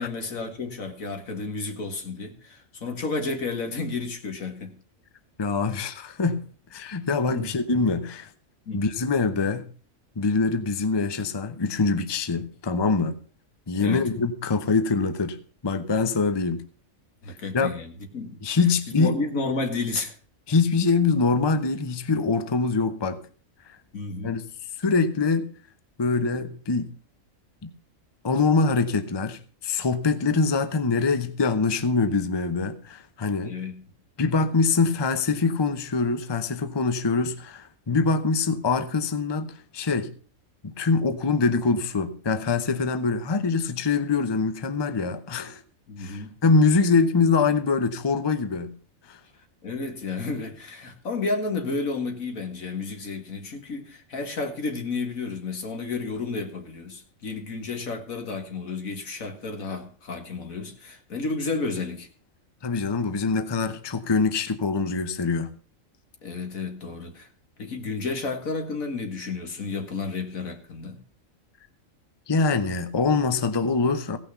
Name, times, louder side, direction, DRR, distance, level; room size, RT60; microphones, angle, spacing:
voice 1, 0.0-4.7 7.3-7.6 8.7-8.8 13.8-14.0 17.2-18.4 18.9-20.1 23.9-24.5 33.4-33.8 45.9-46.4 49.6-62.1 66.2-67.3 67.6-71.0, left 3 dB, 80° left, 2.1 m, -31 dB
voice 2, 5.4-6.4 6.7-8.3 8.7-9.7 10.2-13.2 13.7-15.4 15.6-16.6 17.5-17.7 18.4-19.2 20.5-23.2 24.2-24.4 24.8-25.5 26.0-26.9 27.6-27.7 28.2-33.6 34.2-40.1 40.6-45.6 46.0-48.7 49.1-49.2 62.6-65.5 72.3-74.2, left 4 dB, 25° left, 0.7 m, -24 dB
16.0 x 5.9 x 6.7 m
omnidirectional pair, 1.4 m